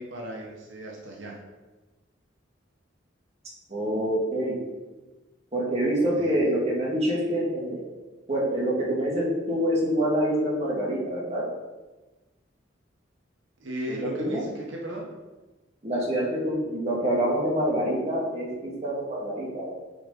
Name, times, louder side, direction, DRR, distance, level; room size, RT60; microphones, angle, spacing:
voice 1, 0.0-1.4 6.2-6.3 13.6-15.1, equal, 85° right, -1 dB, 1.0 m, -36 dB
voice 2, 3.7-4.6 5.5-7.8 8.3-11.4 13.9-14.5 15.8-19.7, equal, 35° right, -5 dB, 1.9 m, -26 dB
8.5 x 4.0 x 3.8 m, 1.2 s
head